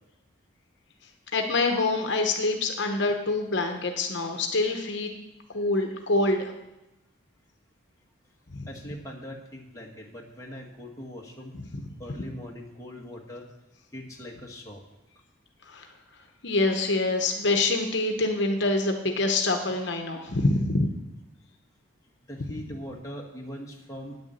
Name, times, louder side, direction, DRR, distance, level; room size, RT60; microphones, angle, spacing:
voice 1, 1.3-5.1 5.5-6.4 8.5-8.6 15.7-15.8 16.4-20.9, left 2 dB, 60° left, 4 dB, 1.0 m, -25 dB
voice 2, 8.7-11.6 12.0-13.5 13.9-14.8 22.3-24.2, equal, 15° left, -2 dB, 1.5 m, -41 dB
9.5 x 7.1 x 8.0 m, 0.94 s
head